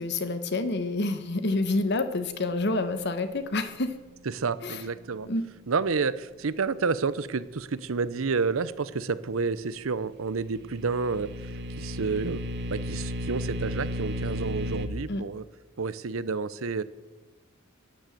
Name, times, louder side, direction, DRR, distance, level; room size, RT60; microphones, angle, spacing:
voice 1, 0.0-4.0 4.6-4.8 5.2-5.5 15.1-15.2, left 2 dB, 55° left, 10 dB, 1.2 m, -28 dB
voice 2, 4.3-5.3 5.7-11.3 11.8-12.4 12.7-15.4 15.8-16.8, right 4 dB, 80° right, 16 dB, 0.7 m, -29 dB
sound 1, 10.3-14.9, left 1 dB, 55° right, 1.2 m, -33 dB
12.0 x 10.5 x 7.7 m, 1.3 s
head